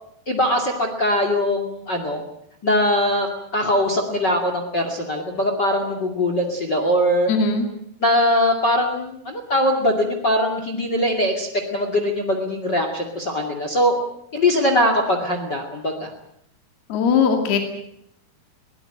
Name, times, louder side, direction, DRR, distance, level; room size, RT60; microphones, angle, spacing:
voice 1, 0.3-2.2 2.6-7.3 8.0-14.0 14.3-16.1, left 1 dB, 30° left, 5 dB, 2.4 m, -21 dB
voice 2, 7.3-7.7 16.9-17.6, left 5 dB, 70° left, 4 dB, 4.4 m, -19 dB
22.0 x 19.0 x 9.0 m, 0.75 s
omnidirectional pair, 4.7 m